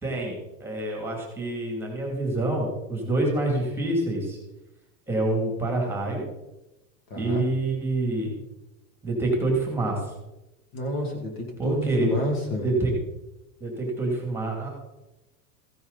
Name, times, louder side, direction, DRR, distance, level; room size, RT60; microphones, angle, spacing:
voice 1, 0.0-4.4 5.1-6.3 7.2-8.3 9.0-10.1 11.6-12.1 12.6-12.9 13.6-14.7, right 2 dB, 5° right, 0 dB, 2.7 m, -27 dB
voice 2, 7.1-7.4 10.7-12.7, left 1 dB, 35° left, 1 dB, 2.6 m, -29 dB
15.5 x 9.4 x 4.1 m, 0.99 s
supercardioid pair, 155°, 44 cm